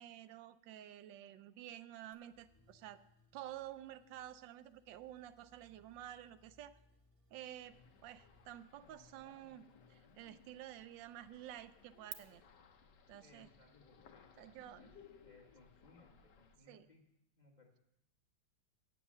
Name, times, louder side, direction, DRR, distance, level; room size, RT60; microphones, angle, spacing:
voice 1, 0.0-3.0 3.3-6.8 7.3-7.8 8.0-9.6 9.9-12.4 13.1-13.5 14.4-14.9 16.7-16.9, right 12 dB, 80° right, 14 dB, 1.2 m, -51 dB
sound 1, 2.1-12.1, right 7 dB, 60° right, 1.3 m, -62 dB
sound 2, 2.3-8.6, left 2 dB, 40° left, 1.6 m, -72 dB
sound 3, 7.6-16.6, left 6 dB, 65° left, 1.4 m, -63 dB
voice 2, 13.2-14.9 15.2-17.0 17.4-17.8, left 2 dB, 25° left, 1 dB, 1.3 m, -66 dB
8.6 x 8.5 x 7.1 m, 0.87 s
omnidirectional pair, 2.0 m